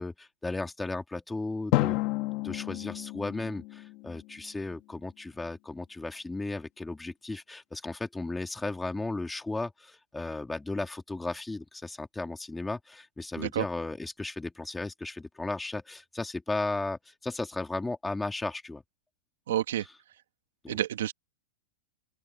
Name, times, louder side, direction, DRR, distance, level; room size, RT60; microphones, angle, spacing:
voice 1, 0.0-2.0 2.4-18.8 20.6-20.8, left 2 dB, 5° left, 2.4 m, -35 dB
Drum, 1.7-4.6, left 20 dB, 40° left, 1.7 m, -31 dB
voice 2, 19.5-19.9 20.7-21.1, right 12 dB, 80° right, 2.1 m, -29 dB
open air
supercardioid pair, 155°, 0 cm